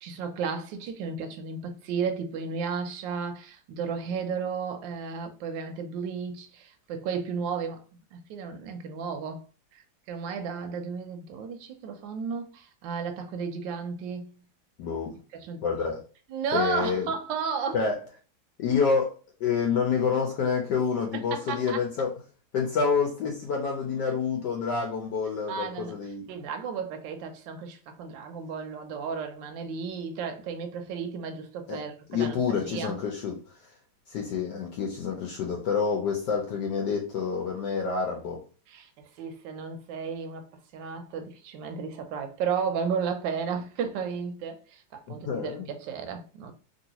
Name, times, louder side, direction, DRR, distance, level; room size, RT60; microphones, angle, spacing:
voice 1, 0.0-7.8 8.1-9.4 9.7-14.3 15.4-15.6 16.3-17.8 21.3-21.8 25.5-25.9 26.3-33.0 38.7-38.9 39.2-40.5 40.7-46.5, right 6 dB, 80° right, 1.3 m, -33 dB
voice 2, 14.8-15.1 15.6-16.0 16.5-17.1 17.7-18.0 18.6-22.1 22.5-26.2 31.7-31.8 32.1-33.4 34.1-38.4 45.1-45.7, left 5 dB, 70° left, 1.1 m, -28 dB
3.0 x 2.8 x 2.8 m
omnidirectional pair, 2.1 m